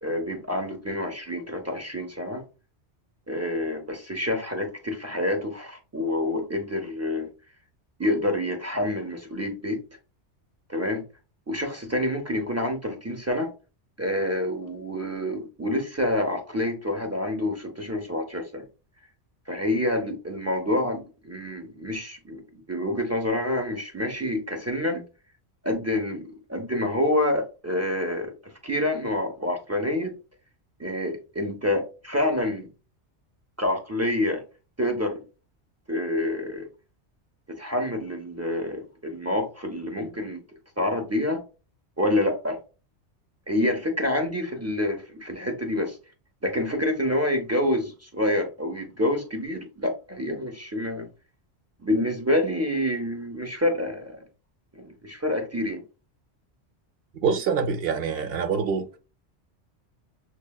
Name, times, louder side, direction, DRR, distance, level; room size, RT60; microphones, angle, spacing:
voice 1, 0.0-2.4 3.3-7.3 8.0-9.8 10.7-11.0 11.5-13.5 14.0-18.6 19.5-22.4 22.7-25.0 25.6-30.1 30.8-32.7 33.6-34.4 34.8-35.2 35.9-36.7 37.5-40.4 40.8-41.4 42.0-42.6 43.5-46.0 46.4-51.1 51.8-54.2 54.7-55.8, left 1 dB, 25° right, 0.3 m, -27 dB
voice 2, 57.2-58.9, right 6 dB, 65° right, 0.7 m, -25 dB
6.1 x 2.1 x 2.2 m
omnidirectional pair, 1.1 m